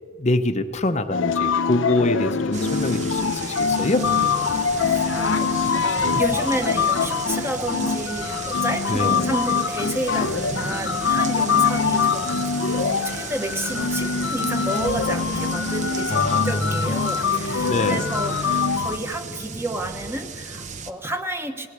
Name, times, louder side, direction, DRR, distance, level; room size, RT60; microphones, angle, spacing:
voice 1, 0.2-4.0 8.9-9.3 16.1-16.8 17.7-18.0, left 2 dB, 35° left, 7 dB, 0.8 m, -24 dB
sound 1, 1.1-19.0, left 5 dB, 75° left, 0.7 m, -24 dB
sound 2, 2.5-20.9, right 4 dB, 40° right, 0.9 m, -34 dB
sound 3, 3.6-13.8, left 6 dB, 75° right, 2.9 m, -35 dB
voice 2, 4.4-12.4 12.7-21.7, right 1 dB, 10° right, 6 dB, 1.1 m, -31 dB
20.0 x 17.0 x 8.3 m, 2.1 s
head